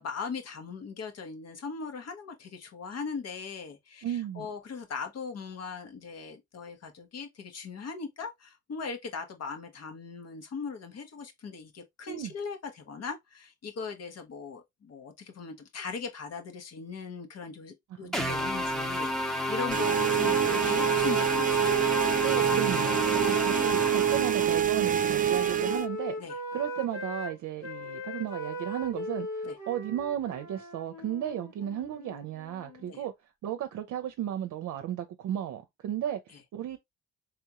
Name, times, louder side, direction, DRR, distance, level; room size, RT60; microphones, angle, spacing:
voice 1, 0.0-21.9 26.2-26.3 29.4-29.6 32.9-33.0, left 5 dB, 55° left, 1.3 m, -39 dB
voice 2, 4.0-4.5 12.1-12.3 18.0-18.4 22.2-23.0 23.2-26.2 26.5-33.1 33.4-36.8, right 11 dB, 75° right, 0.7 m, -34 dB
sound 1, 18.1-24.6, equal, ahead, 0.9 m, -31 dB
sound 2, 19.7-25.9, right 9 dB, 30° right, 0.4 m, -26 dB
Wind instrument woodwind instrument, 23.7-27.3 27.6-32.9, left 1 dB, 75° left, 1.9 m, -40 dB
3.6 x 3.5 x 2.9 m
cardioid pair, 90°, 30 cm